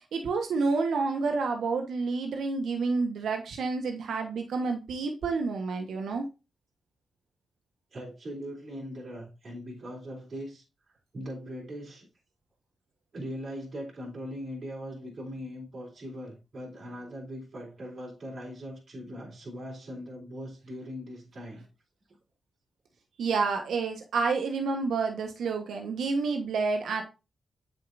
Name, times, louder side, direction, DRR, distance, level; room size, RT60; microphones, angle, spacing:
voice 1, 0.1-6.3 23.2-27.0, right 4 dB, 80° right, 1.2 m, -29 dB
voice 2, 7.9-12.1 13.1-21.7, equal, 50° right, 3.6 m, -40 dB
8.3 x 6.5 x 2.6 m
cardioid pair, 75°, 0 cm